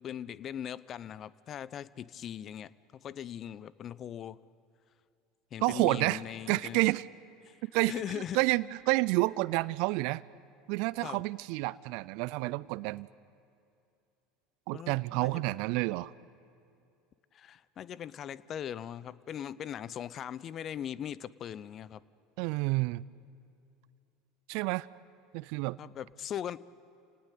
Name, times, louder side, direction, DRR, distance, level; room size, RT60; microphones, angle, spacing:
voice 1, 0.0-4.4 5.5-6.8 7.4-7.6 7.9-8.4 11.0-11.2 14.7-15.6 17.3-22.0 25.8-26.6, left 9 dB, 40° left, 20 dB, 0.7 m, -40 dB
voice 2, 5.6-6.2 6.5-7.1 7.6-10.2 10.7-13.1 14.7-16.1 22.4-23.0 24.5-24.9 25.3-25.8, right 22 dB, 60° right, 21 dB, 0.5 m, -29 dB
29.0 x 18.5 x 8.5 m, 2.6 s
hypercardioid pair, 75°, 0 cm